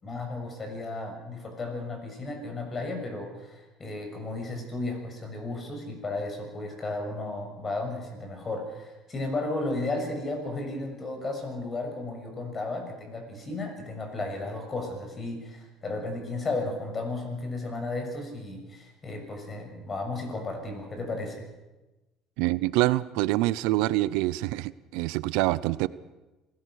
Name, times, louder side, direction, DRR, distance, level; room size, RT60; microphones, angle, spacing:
voice 1, 0.0-21.4, left 2 dB, 30° left, 4 dB, 6.6 m, -34 dB
voice 2, 22.4-25.9, right 18 dB, 80° right, 18 dB, 0.6 m, -26 dB
26.0 x 17.0 x 6.5 m, 1.1 s
cardioid pair, 110°, 0 cm